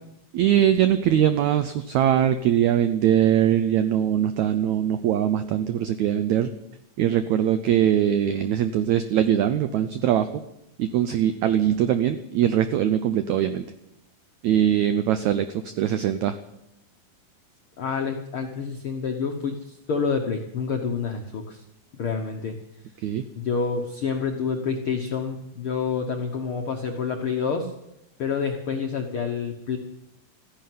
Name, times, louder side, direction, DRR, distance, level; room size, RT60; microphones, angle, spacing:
voice 1, 0.3-6.5 7.0-10.3 10.8-13.6 14.4-15.5 15.8-16.3 23.0-23.2, right 10 dB, 85° right, 11 dB, 1.6 m, -21 dB
voice 2, 17.8-19.6 19.9-21.6 22.0-22.6 23.4-27.7 28.2-29.8, left 5 dB, 70° left, 3 dB, 1.2 m, -28 dB
14.5 x 10.5 x 9.4 m, 0.85 s
omnidirectional pair, 4.2 m